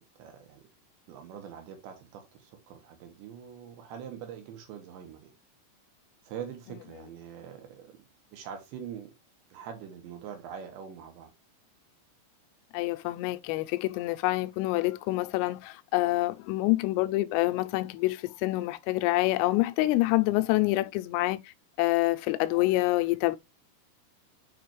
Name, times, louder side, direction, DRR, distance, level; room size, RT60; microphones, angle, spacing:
voice 1, 0.2-0.6 1.1-5.3 6.2-8.0 8.3-9.1 9.5-11.3, right 8 dB, 70° right, 3.2 m, -43 dB
voice 2, 12.7-23.4, left 19 dB, 85° left, 3.1 m, -27 dB
7.5 x 4.9 x 3.1 m
omnidirectional pair, 5.8 m